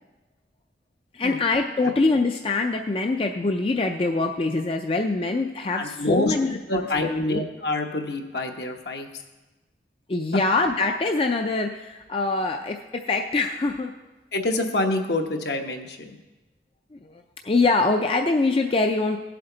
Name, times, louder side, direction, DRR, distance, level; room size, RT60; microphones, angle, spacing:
voice 1, 1.1-7.4 10.1-13.9 16.9-19.2, left 3 dB, 30° left, 4 dB, 0.4 m, -24 dB
voice 2, 5.7-6.4 6.7-9.1 14.3-16.2, left 2 dB, 70° left, 3 dB, 1.1 m, -26 dB
17.0 x 7.7 x 3.9 m, 1.1 s
head